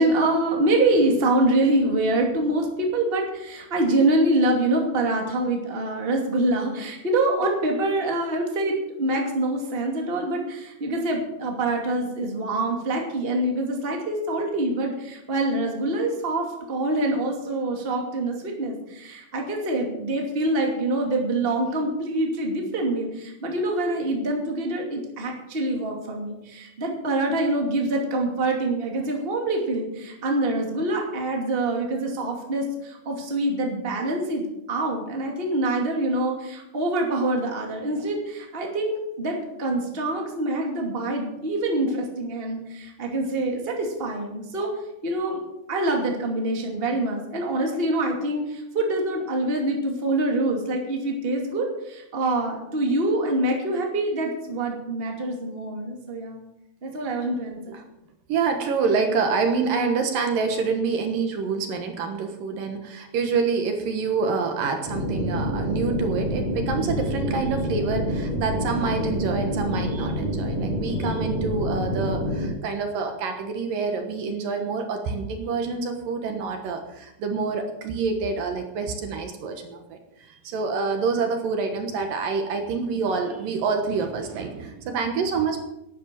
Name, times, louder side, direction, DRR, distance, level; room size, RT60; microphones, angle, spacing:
voice 1, 0.0-44.7 45.0-45.4 45.7-56.4 56.8-57.8, right 2 dB, 20° right, 1 dB, 2.1 m, -25 dB
voice 2, 58.3-85.6, right 5 dB, 70° right, 5 dB, 2.9 m, -27 dB
sound 1, 64.9-72.5, equal, 40° right, 5.2 m, -27 dB
12.0 x 10.0 x 7.5 m, 0.89 s
omnidirectional pair, 4.3 m